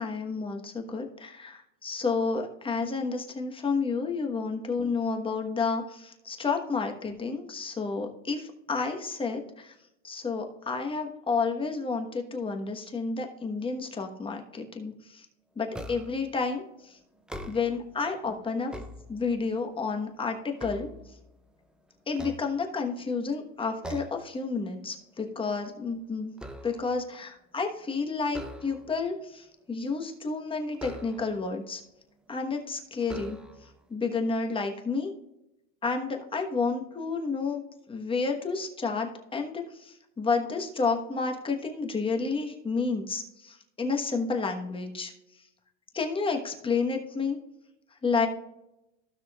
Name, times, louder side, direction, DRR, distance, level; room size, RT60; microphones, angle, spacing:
voice 1, 0.0-9.7 10.0-15.3 15.6-17.0 17.5-18.7 19.1-20.9 22.1-26.3 26.6-31.8 32.3-33.4 33.9-35.1 35.8-37.6 37.9-45.1 45.9-47.4 48.0-48.3, left 4 dB, 15° left, 3 dB, 1.2 m, -30 dB
sound 1, 15.7-16.3 17.1-17.9 18.5-19.6 20.1-21.6 22.1-23.1 23.8-24.3 24.7-25.0 25.3-27.0 28.3-29.1 30.7-31.5 32.3-32.4 33.0-33.8, right 1 dB, ahead, 0.4 m, -43 dB
15.5 x 6.1 x 2.4 m, 0.88 s
supercardioid pair, 140°, 38 cm